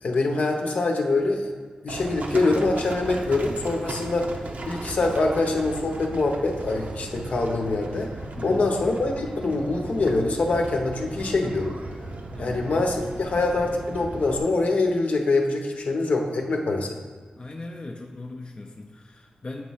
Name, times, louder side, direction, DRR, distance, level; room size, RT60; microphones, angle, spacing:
voice 1, 0.0-1.5 1.8-4.3 4.7-8.1 8.4-11.8 12.4-17.0, left 2 dB, 65° left, 2 dB, 0.8 m, -24 dB
Livestock farm animals working animals, 1.9-14.4, right 2 dB, 65° right, 0.7 m, -36 dB
voice 2, 8.4-8.7 12.3-12.6 17.4-19.6, left 2 dB, 35° left, 1 dB, 0.5 m, -38 dB
7.8 x 3.1 x 5.5 m, 1.4 s
wide cardioid pair, 85°, 3 cm